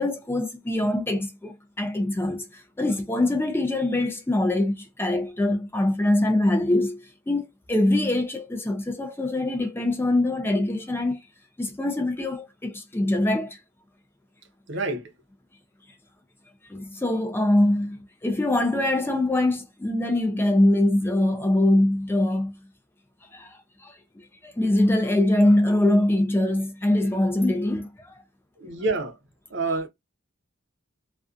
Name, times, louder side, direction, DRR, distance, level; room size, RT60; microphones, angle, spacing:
voice 1, 0.0-11.2 11.6-13.6 16.7-22.5 23.3-28.2, left 1 dB, 10° left, 0.3 m, -23 dB
voice 2, 14.7-15.1 28.6-29.2 29.5-29.9, right 3 dB, 55° right, 0.6 m, -27 dB
2.4 x 2.3 x 2.4 m
head